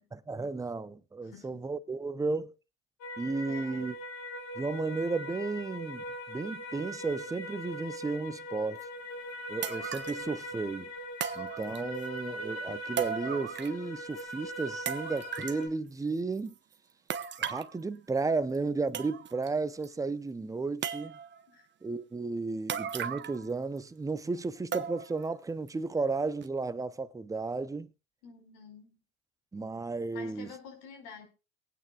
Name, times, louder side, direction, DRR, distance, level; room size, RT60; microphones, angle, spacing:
voice 1, 0.1-2.5 3.2-3.9 4.6-8.9 9.5-10.9 11.3-16.6 17.4-21.2 21.8-27.9 29.5-30.5, right 3 dB, 10° right, 0.7 m, -33 dB
voice 2, 1.2-1.7 3.5-3.9 21.5-21.7 28.2-29.0 30.1-31.3, left 6 dB, 60° left, 5.1 m, -49 dB
sound 1, 3.0-15.7, equal, 40° left, 2.6 m, -40 dB
sound 2, 8.8-8.9 9.6-10.2 11.2-12.1 13.0-13.9 14.2-14.3 14.9-15.6 17.1-17.7 18.5-18.6 18.9-19.5 19.8-19.9 20.8-21.4 22.7-23.5 23.8-23.9 24.7-25.2 25.7-25.8 26.4-26.5, right 8 dB, 25° right, 1.1 m, -36 dB
23.0 x 9.0 x 2.4 m
supercardioid pair, 115°, 41 cm